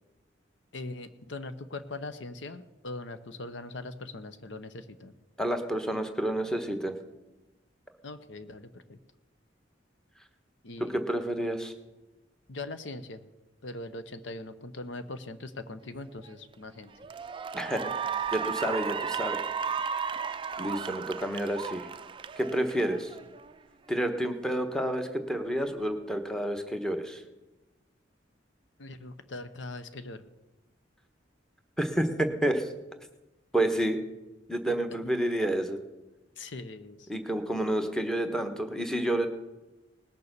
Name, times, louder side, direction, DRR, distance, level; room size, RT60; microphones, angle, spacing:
voice 1, 0.7-5.1 8.0-9.0 10.6-11.0 12.5-13.3 13.6-16.9 28.8-30.2 35.0-35.1 36.4-37.1, left 2 dB, 75° left, 10 dB, 0.9 m, -41 dB
voice 2, 5.4-6.9 10.8-11.7 17.5-17.9 18.3-19.4 20.6-21.9 22.4-23.1 23.9-27.2 31.8-32.7 33.5-34.0 34.5-35.8 37.1-39.3, right 1 dB, 5° left, 6 dB, 1.2 m, -29 dB
Cheering / Applause, 16.3-16.5 17.0-23.5, right 6 dB, 25° right, 0.4 m, -34 dB
19.0 x 6.9 x 6.7 m, 1.1 s
head